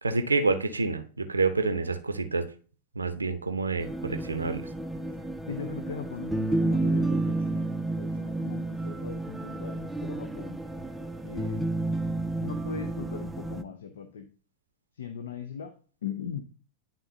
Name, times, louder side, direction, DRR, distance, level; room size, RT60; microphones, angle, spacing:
voice 1, 0.0-2.5 3.0-4.7, right 3 dB, 80° right, 9 dB, 0.6 m, -28 dB
sound 1, 3.8-13.6, right 2 dB, ahead, 0.5 m, -31 dB
voice 2, 5.5-7.7 8.0-10.6 11.2-11.6 12.4-14.3 15.0-15.7 16.0-16.4, left 7 dB, 65° left, 8 dB, 0.6 m, -39 dB
10.5 x 3.8 x 2.7 m, 0.39 s
figure-of-eight pair, 90°, 0 cm